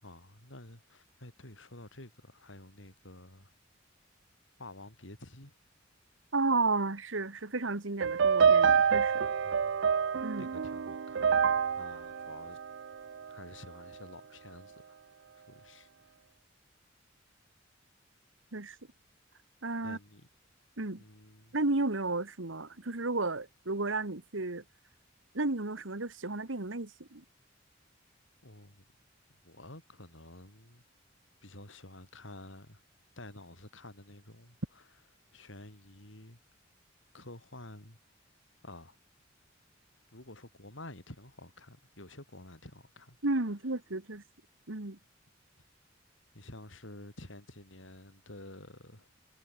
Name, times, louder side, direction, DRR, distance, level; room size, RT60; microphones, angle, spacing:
voice 1, 0.0-3.5 4.6-5.5 9.4-9.7 10.4-11.3 11.8-12.6 13.3-15.0 15.5-15.9 19.8-20.3 20.9-21.6 28.4-28.8 29.4-30.8 31.4-32.8 33.2-34.8 35.3-36.4 37.1-38.0 38.6-39.0 40.1-43.2 46.3-49.1, left 1 dB, 75° left, 7.2 m, -50 dB
voice 2, 6.3-9.3 10.2-10.5 18.5-18.8 19.6-20.0 20.8-21.0 21.5-24.6 25.3-27.2 43.2-44.2 44.7-45.0, right 2 dB, 85° right, 1.9 m, -33 dB
sound 1, 8.0-13.3, right 6 dB, 65° right, 0.5 m, -27 dB
head